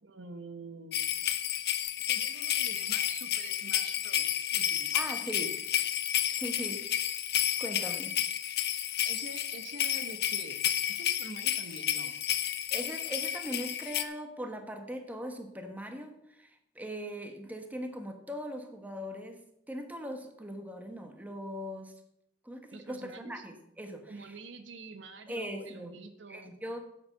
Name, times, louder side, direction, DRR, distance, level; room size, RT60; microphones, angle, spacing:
voice 1, 0.0-1.3 2.0-4.9 9.0-12.1 22.7-23.4 24.1-26.5, right 3 dB, 75° right, 7 dB, 1.2 m, -47 dB
sound 1, 0.9-14.0, left 11 dB, 60° left, 0.9 m, -31 dB
voice 2, 4.9-5.6 6.3-6.9 7.6-8.1 12.7-21.9 22.4-24.3 25.3-26.0 26.3-26.8, equal, 10° right, 5 dB, 1.2 m, -40 dB
10.5 x 7.6 x 6.7 m, 0.78 s
head